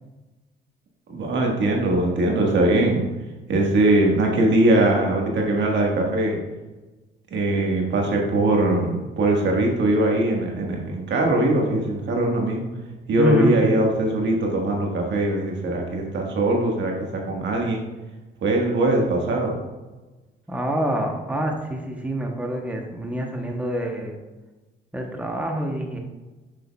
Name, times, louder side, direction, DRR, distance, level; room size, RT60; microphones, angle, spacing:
voice 1, 1.1-3.1 3.5-6.4 7.3-12.6 13.1-17.8 18.4-19.6, right 1 dB, 65° right, 0 dB, 1.4 m, -21 dB
voice 2, 13.2-13.6 20.5-24.2 24.9-26.0, right 1 dB, 5° right, 2 dB, 0.8 m, -26 dB
6.6 x 6.3 x 2.3 m, 1.2 s
cardioid pair, 90°, 20 cm